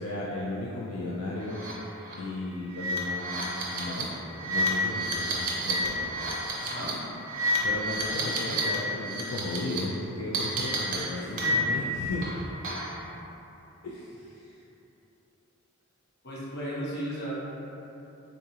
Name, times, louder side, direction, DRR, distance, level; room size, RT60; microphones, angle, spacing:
voice 1, 0.0-1.6 2.2-4.1 4.4-6.2 6.6-6.7 7.6-12.3 13.8-14.6, left 2 dB, 75° left, -5 dB, 0.3 m, -35 dB
sound 1, 1.5-1.7 2.0-2.1 2.7-8.8 9.0-9.8 10.3-11.9 12.2-13.0, right 1 dB, 35° right, 0.5 m, -30 dB
voice 2, 6.6-6.9 11.2-11.5 16.2-17.3, equal, 50° left, -7 dB, 0.8 m, -35 dB
3.8 x 2.4 x 2.8 m, 2.9 s
head